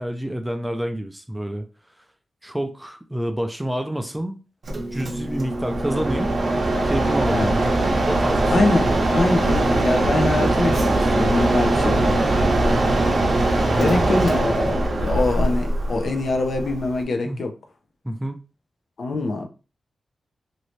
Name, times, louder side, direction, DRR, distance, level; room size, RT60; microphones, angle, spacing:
voice 1, 0.0-1.7 2.4-4.4 4.9-6.3 6.6-7.6 8.0-8.6 12.7-13.0 13.6-13.9 17.2-17.4 18.0-18.5, right 1 dB, 5° right, 0.3 m, -28 dB
Mechanisms, 4.6-17.0, right 2 dB, 50° right, 0.7 m, -21 dB
voice 2, 8.5-12.3 13.8-17.5 19.0-19.5, left 2 dB, 60° left, 0.6 m, -24 dB
3.0 x 2.7 x 3.1 m
wide cardioid pair, 145°, 0 cm